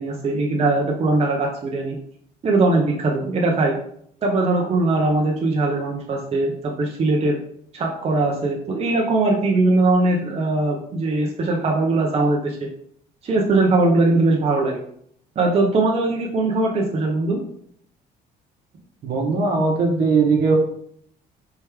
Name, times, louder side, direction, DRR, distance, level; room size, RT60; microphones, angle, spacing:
voice 1, 0.0-2.0 2.4-3.8 4.2-7.4 7.7-12.7 13.2-14.8 15.4-17.4, right 2 dB, 40° right, -1 dB, 0.8 m, -20 dB
voice 2, 19.0-20.6, right 4 dB, 65° right, 1 dB, 1.2 m, -19 dB
4.5 x 3.1 x 3.5 m, 0.66 s
cardioid pair, 110°, 17 cm